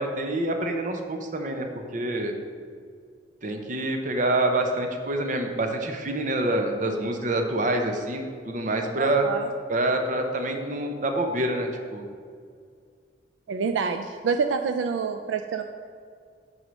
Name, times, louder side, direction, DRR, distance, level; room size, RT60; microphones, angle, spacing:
voice 1, 0.0-1.7 1.9-2.3 3.4-9.3 9.7-12.0, right 1 dB, 45° right, 4 dB, 0.7 m, -26 dB
voice 2, 9.0-9.5 13.5-15.6, right 5 dB, 80° right, 7 dB, 0.4 m, -27 dB
6.2 x 5.5 x 6.1 m, 2.2 s
head